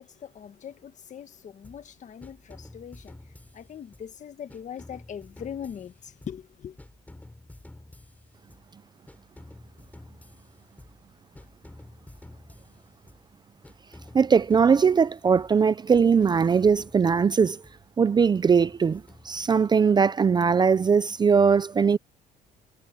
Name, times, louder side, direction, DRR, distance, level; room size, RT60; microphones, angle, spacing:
voice 1, 0.0-3.2 3.5-6.8, left 8 dB, 45° left, 1.7 m, -41 dB
sound 1, 1.6-1.9 2.2-4.2 4.5-6.5 6.8-8.7 9.1-11.1 11.4-13.3 13.6-15.6 15.9-17.8 18.2-19.9, left 1 dB, 10° left, 5.5 m, -50 dB
voice 2, 14.1-17.6 18.0-22.0, right 6 dB, 25° right, 0.5 m, -20 dB
cardioid pair, 110°, 17 cm